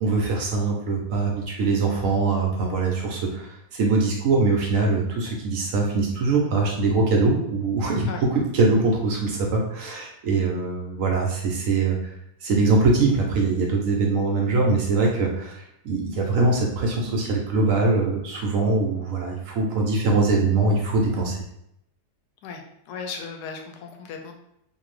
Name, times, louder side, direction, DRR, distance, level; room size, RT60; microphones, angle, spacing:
voice 1, 0.0-12.0 12.4-21.4, right 3 dB, 70° right, 0 dB, 0.9 m, -22 dB
voice 2, 22.4-24.3, left 5 dB, 85° left, 4 dB, 1.1 m, -36 dB
2.6 x 2.5 x 3.1 m, 0.77 s
omnidirectional pair, 1.7 m